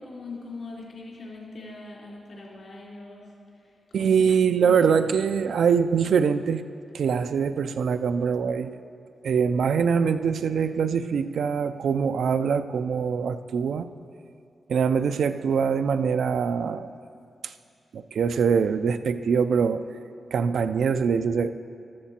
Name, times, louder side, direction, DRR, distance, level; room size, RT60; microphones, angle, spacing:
voice 1, 0.0-3.3 3.9-4.3, left 3 dB, 60° left, -4 dB, 3.5 m, -41 dB
voice 2, 3.9-6.6 6.9-8.8 9.2-13.9 14.7-16.9 17.4-17.5 17.9-19.8 20.3-21.5, right 6 dB, 75° right, 10 dB, 0.4 m, -23 dB
14.0 x 12.5 x 4.4 m, 2.4 s
wide cardioid pair, 140°, 0 cm